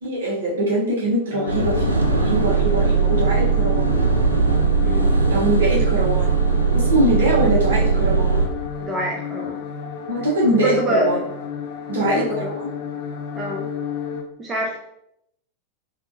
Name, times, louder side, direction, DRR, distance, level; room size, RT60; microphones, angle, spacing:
voice 1, 0.0-4.0 5.3-6.4 6.7-8.4 10.1-11.2 11.9-12.2 12.6-12.7, right 1 dB, 60° right, -4 dB, 1.0 m, -22 dB
sound 1, 1.3-14.2, left 7 dB, 50° left, 0.4 m, -32 dB
sound 2, 1.5-8.5, right 5 dB, 80° right, 0.4 m, -19 dB
voice 2, 8.8-9.6 10.6-11.1 12.0-12.5 13.4-13.7 14.4-14.8, equal, 20° right, 0 dB, 0.5 m, -25 dB
3.5 x 2.5 x 2.6 m, 0.78 s
figure-of-eight pair, 90°, 0 cm